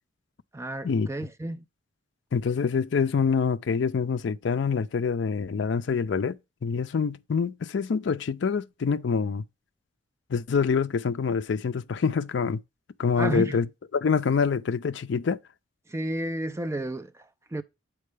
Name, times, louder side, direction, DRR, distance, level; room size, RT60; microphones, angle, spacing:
voice 1, 0.5-1.7 13.2-13.6 15.9-17.6, right 1 dB, 15° right, 0.3 m, -32 dB
voice 2, 2.3-6.4 6.6-9.4 10.3-12.6 13.0-13.7 13.9-15.4, left 5 dB, 65° left, 0.4 m, -26 dB
7.5 x 4.6 x 3.2 m
head